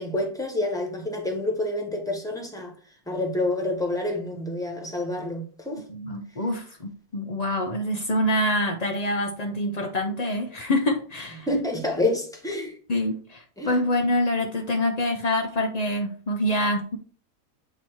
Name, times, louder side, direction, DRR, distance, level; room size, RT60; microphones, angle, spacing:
voice 1, 0.0-2.7 3.1-5.8 11.5-12.8 13.6-13.7, left 2 dB, 5° left, 1.0 m, -28 dB
voice 2, 5.9-11.5 12.9-17.0, left 1 dB, 80° left, 0.3 m, -26 dB
7.8 x 2.9 x 4.5 m
omnidirectional pair, 1.7 m